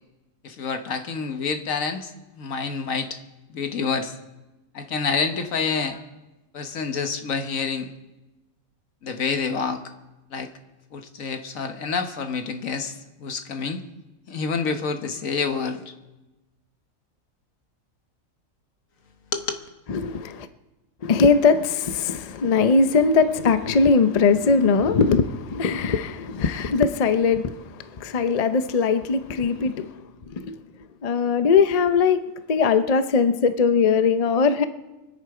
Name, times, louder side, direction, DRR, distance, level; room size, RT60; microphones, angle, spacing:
voice 1, 0.4-3.2 3.5-4.1 4.7-6.0 6.5-7.9 9.0-9.8 10.3-10.5 10.9-13.8 14.3-15.8 19.3-19.6, left 5 dB, 75° left, 7 dB, 1.5 m, -28 dB
voice 2, 19.9-20.5 21.0-29.9 30.3-30.5 31.0-32.2 32.5-34.6, left 5 dB, 40° left, 10 dB, 0.6 m, -20 dB
24.0 x 10.0 x 4.9 m, 1.1 s
omnidirectional pair, 1.4 m